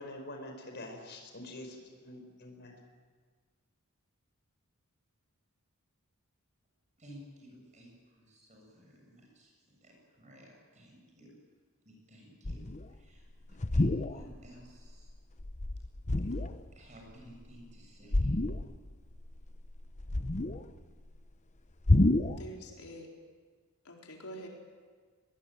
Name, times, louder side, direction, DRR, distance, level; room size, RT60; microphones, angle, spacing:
voice 1, 0.0-2.8, left 1 dB, 50° left, 4 dB, 5.2 m, -45 dB
voice 2, 7.0-9.5 9.8-11.3 11.8-12.6 12.9-15.1 16.3-16.4 16.7-18.3, equal, 35° right, 0 dB, 7.5 m, -53 dB
sound 1, 12.4-12.9 13.5-14.5 14.9-15.1 15.4-16.7 18.1-18.9 19.2-20.8 21.9-22.4, left 2 dB, 35° left, 0.8 m, -29 dB
voice 3, 22.3-23.1 23.8-24.5, equal, 90° left, 0 dB, 4.3 m, -46 dB
22.0 x 22.0 x 9.1 m, 1.5 s
head